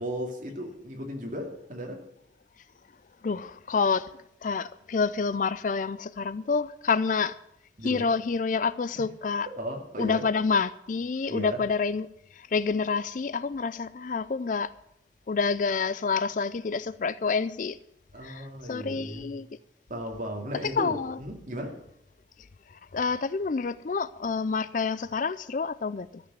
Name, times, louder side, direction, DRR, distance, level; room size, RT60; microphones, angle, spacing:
voice 1, 0.0-2.0 7.8-8.1 9.6-10.2 11.3-11.6 18.1-19.3 19.9-21.8, equal, 45° right, 2.5 m, -36 dB
voice 2, 3.2-4.1 4.4-7.4 7.8-9.5 10.0-14.7 15.3-17.8 18.2-19.5 20.6-21.2 22.7-26.2, left 5 dB, 45° left, 0.4 m, -28 dB
13.5 x 6.2 x 9.5 m
head